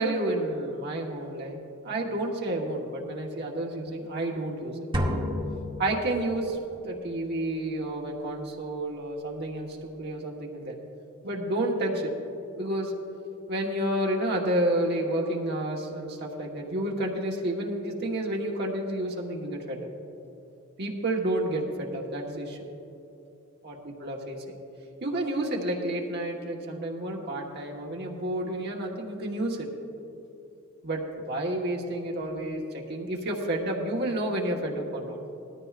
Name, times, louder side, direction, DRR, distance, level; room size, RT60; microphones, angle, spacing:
voice 1, 0.0-1.6 1.8-4.8 5.8-10.8 11.2-12.1 12.6-12.9 13.5-19.9 20.8-22.6 23.6-23.7 24.0-24.4 25.0-29.7 30.8-35.2, right 1 dB, 55° right, -1 dB, 1.3 m, -30 dB
sound 1, 4.9-6.6, left 1 dB, 25° right, 1.1 m, -30 dB
18.5 x 13.5 x 2.5 m, 2.8 s
head